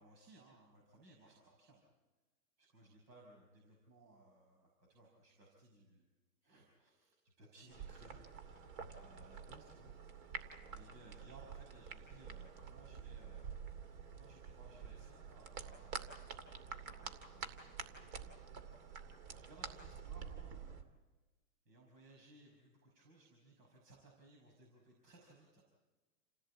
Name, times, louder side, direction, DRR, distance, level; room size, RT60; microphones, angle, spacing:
voice 1, 0.0-1.8 2.6-6.1 6.4-9.9 10.4-13.6 14.2-18.4 19.2-20.8 21.7-25.6, right 2 dB, 80° right, 0 dB, 5.9 m, -62 dB
sound 1, 7.7-20.8, right 6 dB, 55° right, 2.7 m, -49 dB
28.5 x 16.0 x 8.6 m, 1.2 s
hypercardioid pair, 140°, 49 cm